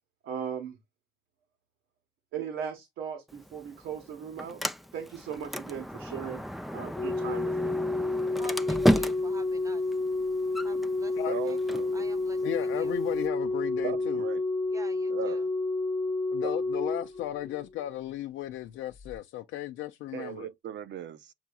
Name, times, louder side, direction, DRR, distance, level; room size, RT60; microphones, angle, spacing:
voice 1, 0.2-0.8 2.3-4.6 4.9-6.4 6.7-7.8, right 8 dB, 90° right, 1.2 m, -37 dB
Sliding door, 3.3-13.3, equal, ahead, 0.4 m, -34 dB
Organ, 7.0-17.8 19.0-19.2, left 2 dB, 25° left, 0.7 m, -30 dB
voice 2, 8.4-9.8 10.6-11.1 11.4-11.6 11.9-12.4 12.7-12.9 14.7-15.4, right 2 dB, 15° right, 0.8 m, -48 dB
voice 3, 11.3-12.1 13.8-14.4 15.1-15.5 16.4-16.5 20.1-21.3, right 8 dB, 65° right, 0.7 m, -38 dB
voice 4, 12.4-14.2 16.3-20.5, left 14 dB, 90° left, 0.5 m, -35 dB
7.2 x 2.9 x 2.2 m
cardioid pair, 90°, 20 cm